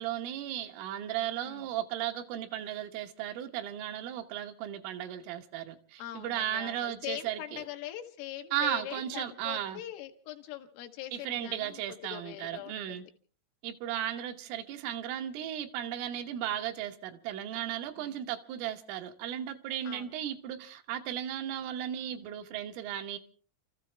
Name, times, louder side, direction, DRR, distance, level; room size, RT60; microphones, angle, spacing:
voice 1, 0.0-7.6 8.5-9.8 11.1-13.0 13.6-23.2, right 11 dB, 80° right, 3.6 m, -35 dB
voice 2, 6.0-13.1 18.0-18.3 19.9-20.2, left 13 dB, 75° left, 3.8 m, -42 dB
30.0 x 14.5 x 3.4 m
omnidirectional pair, 5.9 m